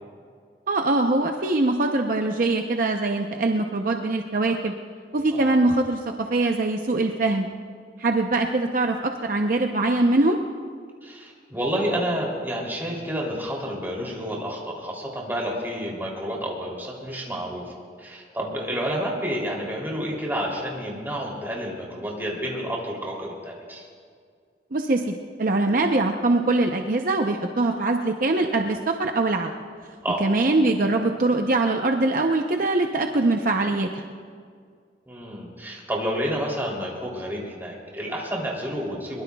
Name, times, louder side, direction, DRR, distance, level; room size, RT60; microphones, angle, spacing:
voice 1, 0.7-4.7 5.1-7.5 8.0-10.4 24.7-29.5 30.2-34.0, right 2 dB, 50° right, 3 dB, 0.7 m, -22 dB
voice 2, 11.0-17.7 18.0-23.9 30.0-30.3 35.1-39.2, equal, 10° right, -3 dB, 3.0 m, -30 dB
23.0 x 21.0 x 2.3 m, 2.1 s
head